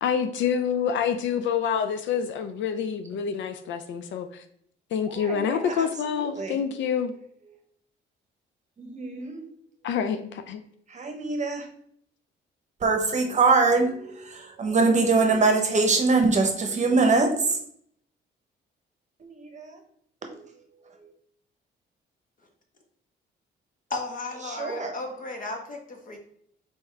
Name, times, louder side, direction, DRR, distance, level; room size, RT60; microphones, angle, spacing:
voice 1, 0.0-4.4 4.9-7.1 9.8-10.6, left 7 dB, 70° left, 9 dB, 0.4 m, -27 dB
voice 2, 5.0-6.6 8.8-9.4 10.9-11.7 12.8-17.6 19.2-19.8 20.3-20.5 21.0-21.1 24.4-25.0, right 3 dB, 35° right, 3 dB, 0.9 m, -24 dB
voice 3, 23.9-26.2, left 3 dB, 40° left, 3 dB, 1.1 m, -34 dB
4.2 x 3.5 x 3.3 m, 0.67 s
cardioid pair, 90°, 20 cm